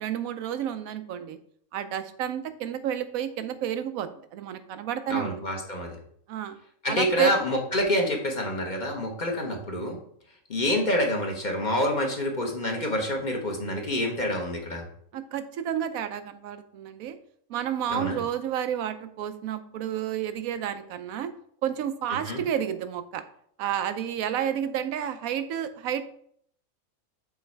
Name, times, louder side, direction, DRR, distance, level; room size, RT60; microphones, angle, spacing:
voice 1, 0.0-1.4 1.7-5.3 6.3-6.6 6.9-7.3 15.1-17.2 17.5-21.3 21.6-23.2 23.6-26.0, right 9 dB, 85° right, 10 dB, 1.0 m, -30 dB
voice 2, 5.1-6.0 6.8-10.0 10.5-14.8 17.9-18.2 22.3-22.4, left 1 dB, 35° left, 1 dB, 1.0 m, -27 dB
7.1 x 3.2 x 4.5 m, 0.64 s
omnidirectional pair, 1.4 m